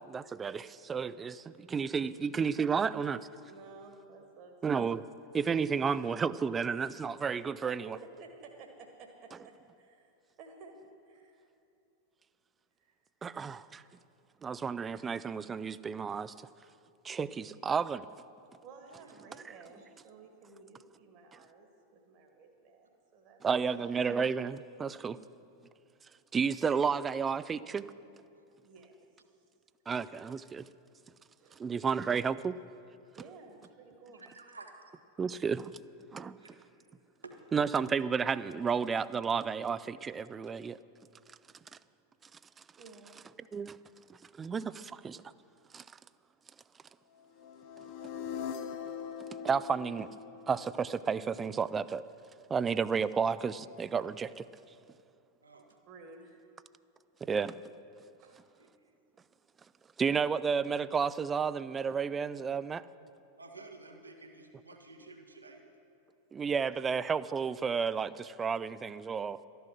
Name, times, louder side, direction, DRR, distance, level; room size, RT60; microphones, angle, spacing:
voice 1, 0.1-3.3 4.6-5.0 5.3-8.0 13.2-13.8 14.4-16.3 17.0-18.1 23.4-25.2 26.3-27.8 29.9-30.7 31.6-32.6 35.2-35.7 36.1-36.4 37.5-40.8 43.5-43.8 44.4-45.2 45.7-45.8 49.4-50.1 50.5-52.0 52.5-54.4 57.2-57.6 60.0-62.8 66.3-69.4, right 6 dB, 20° right, 16 dB, 0.3 m, -32 dB
voice 2, 3.5-4.5 7.9-9.1 9.4-10.1 10.4-10.7 11.1-11.4 12.8-13.0 18.6-23.6 28.6-28.9 31.4-31.6 33.2-34.3 42.8-43.2 55.9-56.5 58.2-58.4, right 4 dB, 40° right, 3 dB, 1.5 m, -53 dB
voice 3, 34.1-34.8 36.4-36.6 37.2-37.3 55.4-55.6 63.4-65.6, right 3 dB, 80° right, 4 dB, 1.3 m, -51 dB
sound 1, 47.4-51.4, left 7 dB, 45° left, 0.6 m, -42 dB
13.0 x 11.0 x 6.2 m, 2.5 s
figure-of-eight pair, 90°, 0 cm